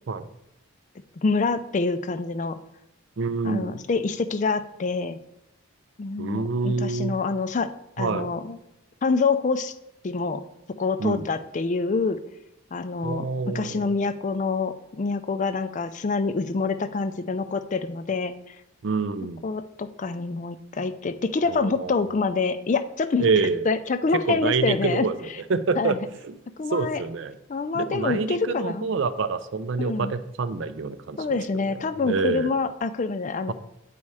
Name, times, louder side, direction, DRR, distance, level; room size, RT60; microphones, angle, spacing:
voice 1, 1.2-2.6 3.4-5.2 6.0-7.7 8.0-8.6 9.0-9.7 10.0-10.4 10.8-12.2 12.7-13.2 13.5-18.5 19.4-23.3 23.7-25.1 25.8-26.0 26.6-27.0 27.5-28.8 29.8-30.1 31.2-33.5, left 4 dB, 35° left, 11 dB, 0.4 m, -26 dB
voice 2, 3.2-3.8 6.2-7.2 8.0-8.3 11.0-11.3 13.0-13.9 18.8-19.4 21.5-22.0 23.2-23.7 24.3-26.0 26.2-26.4 26.7-27.4 27.7-32.5, right 4 dB, 60° right, 13 dB, 0.4 m, -27 dB
8.5 x 4.2 x 4.8 m, 0.85 s
head